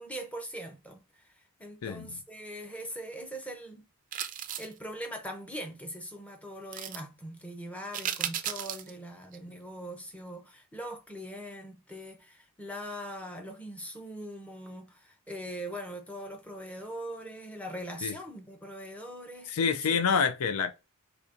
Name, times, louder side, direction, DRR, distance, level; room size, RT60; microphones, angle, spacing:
voice 1, 0.0-1.3 1.6-3.9 4.6-20.0, equal, 5° left, 0.8 m, -41 dB
voice 2, 1.8-2.2 18.0-18.1 19.5-20.7, left 6 dB, 80° left, 0.4 m, -27 dB
sound 1, 4.1-4.8 6.7-7.0 7.9-8.9 9.3-9.4, right 10 dB, 35° right, 0.4 m, -35 dB
5.1 x 3.4 x 2.5 m
head